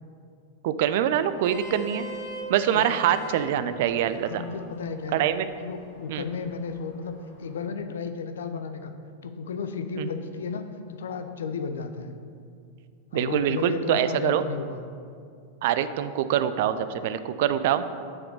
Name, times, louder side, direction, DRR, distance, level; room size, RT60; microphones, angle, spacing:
voice 1, 0.6-2.1 2.5-4.4 5.1-5.5 6.1-6.2 10.0-10.1 13.1-14.4 15.6-17.8, right 10 dB, 50° right, 12 dB, 0.3 m, -24 dB
Vehicle horn car horn honking, 1.2-7.6, right 1 dB, 40° left, 2.0 m, -43 dB
voice 2, 3.6-3.9 4.3-5.3 5.6-8.9 9.2-12.2 13.1-14.8, left 5 dB, 65° left, 8 dB, 0.5 m, -33 dB
5.9 x 4.9 x 6.4 m, 2.3 s
figure-of-eight pair, 90°, 0 cm